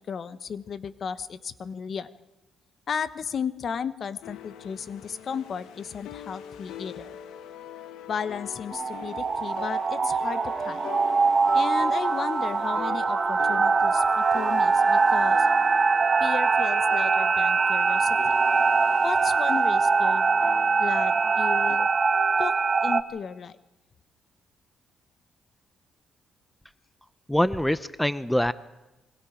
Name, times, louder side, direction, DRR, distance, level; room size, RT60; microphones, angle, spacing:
voice 1, 0.0-2.1 2.9-7.2 8.1-11.0 11.5-15.5 16.2-18.4 19.0-20.3 20.8-21.9 22.4-23.6, left 6 dB, 50° left, 13 dB, 1.0 m, -34 dB
sound 1, 4.2-21.8, left 9 dB, 85° left, 1.2 m, -42 dB
sound 2, 8.7-23.0, right 4 dB, 35° right, 1.1 m, -23 dB
voice 2, 27.3-28.5, equal, 5° left, 14 dB, 0.7 m, -24 dB
28.5 x 23.0 x 5.1 m, 1.0 s
cardioid pair, 90°, 0 cm